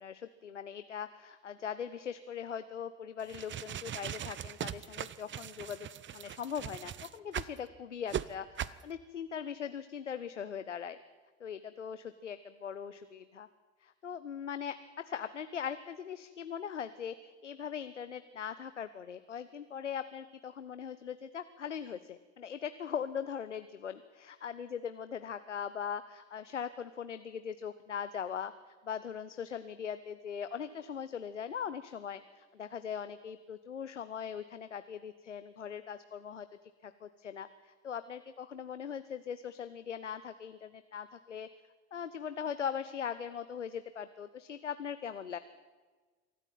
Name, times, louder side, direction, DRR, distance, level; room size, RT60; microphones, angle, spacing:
voice 1, 0.0-5.9 6.1-11.0 11.4-13.5 13.8-36.5 36.8-41.5 41.9-45.4, left 7 dB, 90° left, 12 dB, 0.7 m, -40 dB
sound 1, 3.2-7.6 8.1-8.2 8.6-8.8, right 10 dB, 35° right, 0.9 m, -39 dB
24.0 x 13.5 x 9.1 m, 1.4 s
figure-of-eight pair, 65°, 35 cm